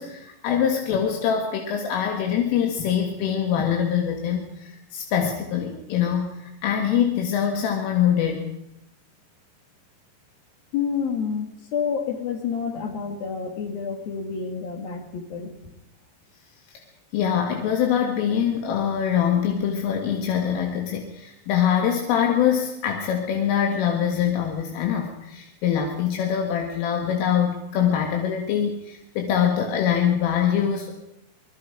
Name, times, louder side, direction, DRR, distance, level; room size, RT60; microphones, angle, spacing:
voice 1, 0.0-8.4 16.7-16.8 17.1-30.9, left 8 dB, 80° left, 2 dB, 4.4 m, -24 dB
voice 2, 10.7-15.5, left 6 dB, 55° left, 4 dB, 3.5 m, -29 dB
25.0 x 21.5 x 5.1 m, 0.86 s
omnidirectional pair, 5.7 m